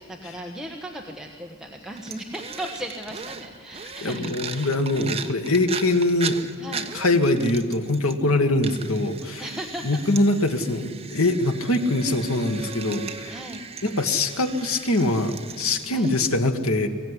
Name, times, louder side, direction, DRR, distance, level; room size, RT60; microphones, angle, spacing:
voice 1, 0.0-4.7 6.6-7.0 9.4-10.0 13.3-13.6 15.9-16.1, right 1 dB, 5° right, 1 dB, 1.4 m, -36 dB
sound 1, 2.0-8.3 8.6-16.2, right 6 dB, 30° right, 1.2 m, -38 dB
voice 2, 4.0-6.4 6.9-9.4 9.8-13.3 13.8-16.9, left 2 dB, 85° left, 7 dB, 1.9 m, -23 dB
23.0 x 16.0 x 10.0 m, 2.1 s
head